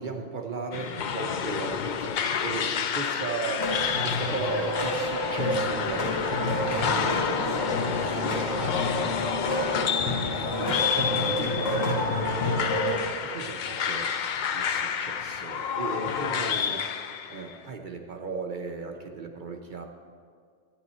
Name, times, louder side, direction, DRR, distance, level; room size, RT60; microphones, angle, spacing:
voice 1, 0.0-3.7 4.0-9.0 10.6-14.1 14.5-16.8 17.3-19.8, right 4 dB, 50° right, 3 dB, 0.7 m, -37 dB
sound 1, 0.7-17.5, left 7 dB, 65° left, 0.4 m, -30 dB
sound 2, 3.6-13.0, left 1 dB, 90° left, 1.5 m, -28 dB
12.0 x 8.9 x 4.1 m, 2.1 s
omnidirectional pair, 1.3 m